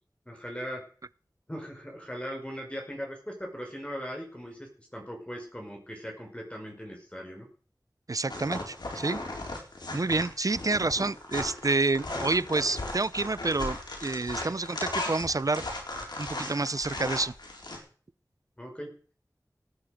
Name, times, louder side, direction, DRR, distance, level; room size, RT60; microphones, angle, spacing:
voice 1, 0.2-0.9 1.5-7.5 18.6-18.9, equal, 15° left, 5.2 m, -39 dB
voice 2, 8.1-9.2 9.9-15.6 16.2-17.3, right 3 dB, 55° right, 0.6 m, -28 dB
sound 1, 8.3-17.8, left 2 dB, 90° left, 4.2 m, -36 dB
18.0 x 9.7 x 5.1 m
wide cardioid pair, 50°, 7 cm